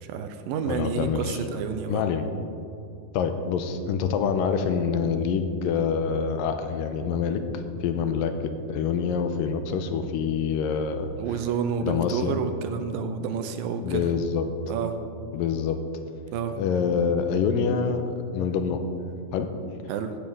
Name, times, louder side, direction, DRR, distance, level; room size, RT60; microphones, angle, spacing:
voice 1, 0.0-2.0 11.2-14.1 14.7-15.0 16.3-16.6 19.9-20.2, right 6 dB, 80° right, 8 dB, 2.5 m, -29 dB
voice 2, 0.7-1.4 1.9-2.3 3.1-7.4 7.8-11.2 11.8-12.4 13.8-14.5 15.3-15.8 16.6-18.8 19.3-19.5, left 6 dB, 85° left, 7 dB, 2.4 m, -26 dB
15.5 x 10.5 x 3.7 m, 2.6 s
omnidirectional pair, 4.0 m